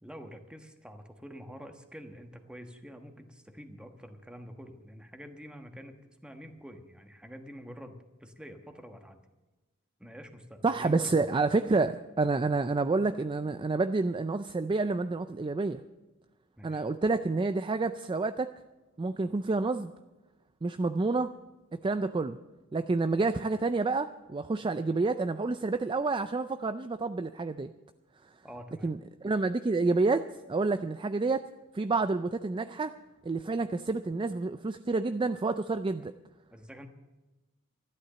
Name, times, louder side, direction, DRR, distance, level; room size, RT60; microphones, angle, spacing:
voice 1, 0.0-9.2 10.0-11.1 16.6-16.8 28.4-28.9 36.5-36.9, equal, 5° right, 5 dB, 1.3 m, -47 dB
voice 2, 10.6-15.8 16.6-18.5 19.0-19.9 20.6-21.3 21.7-22.4 22.7-27.7 28.8-31.5 31.7-32.9 33.2-36.1, right 3 dB, 25° right, 10 dB, 0.4 m, -29 dB
13.0 x 11.5 x 6.8 m, 1.1 s
head